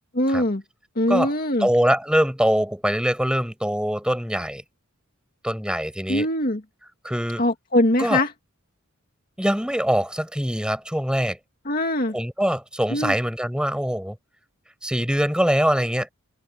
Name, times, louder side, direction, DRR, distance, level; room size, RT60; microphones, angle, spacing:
voice 1, 0.1-0.6 1.0-1.7 6.1-6.6 7.4-8.3 11.7-12.2 12.9-13.1, left 1 dB, 45° left, 2.1 m, -22 dB
voice 2, 1.6-4.6 5.4-6.3 7.0-7.4 8.0-8.2 9.4-11.4 12.1-14.1 14.8-16.1, equal, 5° right, 6.2 m, -23 dB
open air
head